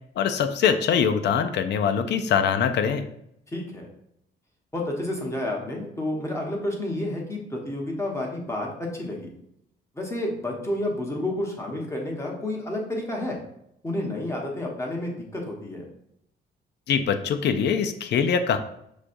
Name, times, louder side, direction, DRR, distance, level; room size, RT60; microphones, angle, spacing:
voice 1, 0.2-3.0 16.9-18.6, left 7 dB, 60° left, 9 dB, 0.4 m, -23 dB
voice 2, 3.5-3.9 4.7-9.3 9.9-13.4 13.8-15.9, left 1 dB, 15° left, -1 dB, 1.1 m, -30 dB
6.1 x 2.3 x 2.6 m, 0.74 s
cardioid pair, 90°, 20 cm